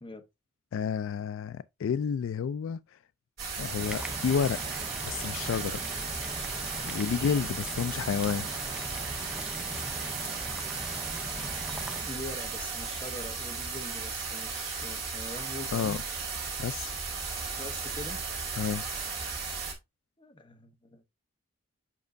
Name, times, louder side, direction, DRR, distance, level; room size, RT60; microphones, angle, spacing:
voice 1, 0.7-2.8 3.6-4.6 5.0-5.8 6.8-8.5 15.7-16.0 16.6-17.0 18.6-18.8, left 6 dB, 75° left, 0.3 m, -30 dB
sound 1, 3.4-19.7, right 4 dB, 50° right, 2.8 m, -35 dB
sound 2, 3.8-12.0, right 1 dB, 5° right, 0.4 m, -40 dB
voice 2, 12.0-16.0 17.6-18.3 20.2-21.0, left 1 dB, 25° left, 0.9 m, -43 dB
7.2 x 5.3 x 2.6 m
head